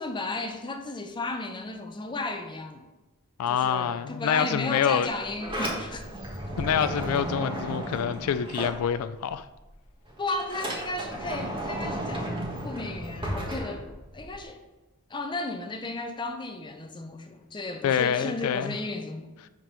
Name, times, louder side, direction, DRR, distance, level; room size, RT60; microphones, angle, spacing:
voice 1, 0.0-2.9 3.5-6.1 10.2-13.9 14.1-14.6 15.1-19.3, left 2 dB, 20° left, 0.5 m, -34 dB
voice 2, 3.4-5.1 6.6-9.5 17.8-18.7, left 8 dB, 75° left, 0.3 m, -26 dB
Sliding door, 5.1-9.4 9.7-14.4, right 1 dB, 25° right, 1.4 m, -34 dB
5.9 x 5.3 x 5.5 m
head